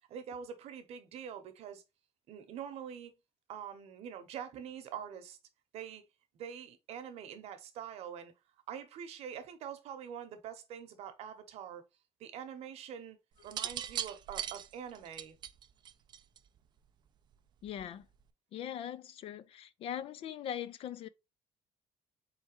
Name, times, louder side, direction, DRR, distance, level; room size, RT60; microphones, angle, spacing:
voice 1, 0.0-1.8 2.3-3.1 3.5-5.4 5.7-6.1 6.3-8.3 8.7-11.8 12.2-13.2 13.4-15.4, right 8 dB, 65° right, 0.9 m, -45 dB
sound 1, 13.4-16.6 17.7-18.0, right 10 dB, 40° right, 0.4 m, -39 dB
voice 2, 17.6-18.1 18.5-21.1, left 10 dB, 55° left, 0.4 m, -41 dB
4.4 x 3.3 x 2.9 m
cardioid pair, 145°, 11 cm